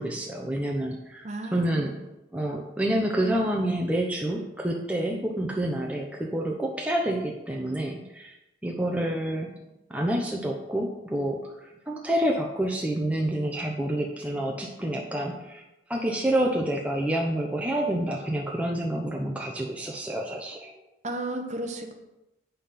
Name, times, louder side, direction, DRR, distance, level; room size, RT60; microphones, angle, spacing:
voice 1, 0.0-1.9 2.3-8.4 8.6-9.5 9.9-15.6 15.9-20.7, right 1 dB, 5° right, -1 dB, 0.7 m, -28 dB
voice 2, 1.2-1.9 21.0-21.9, right 1 dB, 35° right, 4 dB, 1.1 m, -33 dB
8.5 x 5.6 x 5.8 m, 0.93 s
head